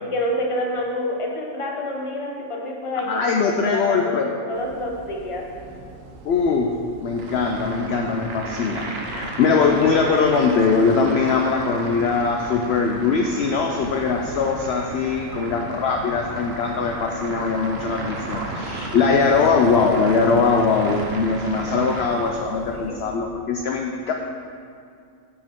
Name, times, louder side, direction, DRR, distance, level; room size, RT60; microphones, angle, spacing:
voice 1, 0.0-4.1 4.5-5.4 22.3-23.0, left 1 dB, 25° left, 0 dB, 0.9 m, -28 dB
voice 2, 3.1-4.4 6.2-6.7 7.0-24.1, left 5 dB, 60° left, 1 dB, 0.7 m, -21 dB
sound 1, 4.5-23.1, right 2 dB, 70° right, 1.2 m, -42 dB
sound 2, 7.2-22.3, right 2 dB, 55° right, 1.0 m, -34 dB
9.5 x 6.1 x 3.6 m, 2.4 s
omnidirectional pair, 1.4 m